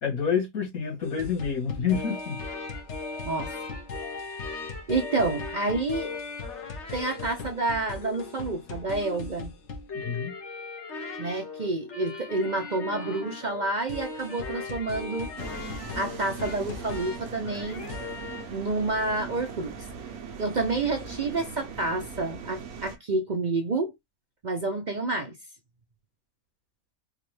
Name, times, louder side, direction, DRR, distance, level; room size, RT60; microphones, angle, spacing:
voice 1, 0.0-2.4 10.0-10.3, left 7 dB, 90° left, 2.4 m, -28 dB
sound 1, 1.0-18.6 18.9-19.2, left 3 dB, 55° left, 1.2 m, -38 dB
voice 2, 4.9-6.1 6.9-9.5 11.2-15.3 15.9-17.8 18.5-19.9 20.4-23.9 24.4-25.4, right 3 dB, 45° right, 0.6 m, -29 dB
sound 2, 15.4-23.0, right 5 dB, 85° right, 1.4 m, -40 dB
4.8 x 2.4 x 3.2 m
omnidirectional pair, 1.5 m